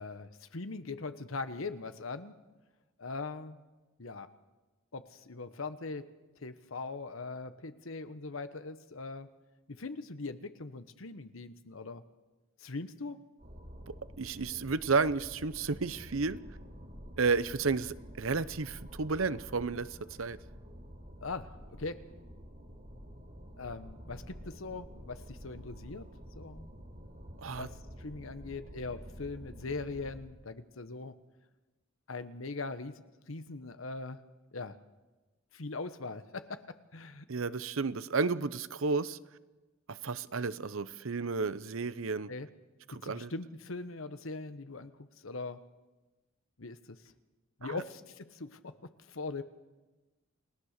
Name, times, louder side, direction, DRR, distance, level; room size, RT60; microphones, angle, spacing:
voice 1, 0.0-2.3 3.0-3.6 4.0-4.3 4.9-6.0 6.4-9.3 9.7-12.0 12.6-13.2 21.2-21.5 21.8-22.0 23.6-26.1 26.3-26.7 27.5-31.1 32.1-34.2 34.5-34.8 35.5-37.3 42.3-42.5 42.9-45.6 46.6-47.0 47.6-49.4, left 3 dB, 80° left, 11 dB, 1.1 m, -41 dB
sound 1, 13.4-30.2, equal, 45° right, 5.0 m, -49 dB
voice 2, 13.9-16.4 17.2-20.4 27.4-27.7 37.3-39.2 39.9-42.3 42.9-43.3 47.6-47.8, right 4 dB, 75° right, 15 dB, 0.8 m, -32 dB
29.5 x 18.0 x 6.7 m, 1.2 s
head